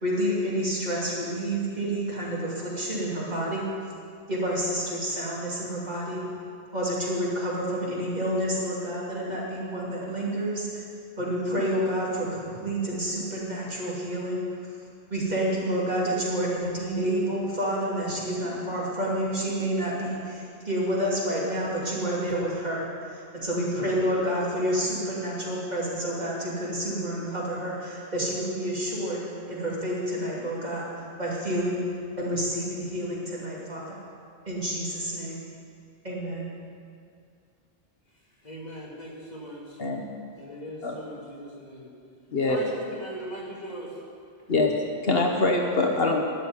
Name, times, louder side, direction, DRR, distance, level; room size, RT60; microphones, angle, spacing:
voice 1, 0.0-3.6 4.3-6.2 6.7-10.8 11.2-14.4 15.1-31.8 32.2-34.0 34.5-35.4 36.0-36.5, right 1 dB, 40° right, -6 dB, 2.9 m, -29 dB
voice 2, 38.4-39.8 40.4-41.9 42.5-44.0, equal, 40° left, -5 dB, 2.6 m, -39 dB
voice 3, 45.0-46.2, left 3 dB, 65° left, 2 dB, 1.2 m, -23 dB
12.0 x 6.6 x 9.7 m, 2.4 s
omnidirectional pair, 1.1 m